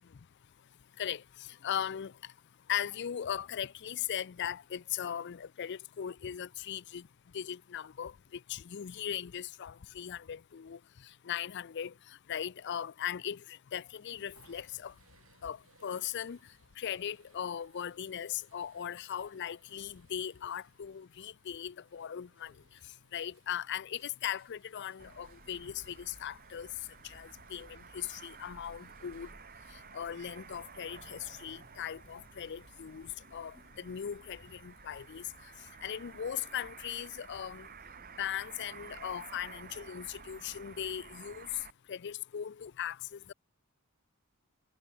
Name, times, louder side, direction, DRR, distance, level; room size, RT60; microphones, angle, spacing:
voice 1, 1.6-2.1 2.7-7.0 7.3-8.1 8.5-10.8 11.3-11.9 12.3-14.9 15.4-15.6 15.8-16.4 16.8-22.5 23.1-26.7 27.0-29.3 29.9-35.2 35.8-37.7 38.2-41.5 41.9-43.3, left 9 dB, 55° left, 0.4 m, -38 dB
sound 1, 13.9-29.3, right 4 dB, 65° right, 3.9 m, -68 dB
sound 2, 25.0-41.7, right 5 dB, 45° right, 1.8 m, -52 dB
head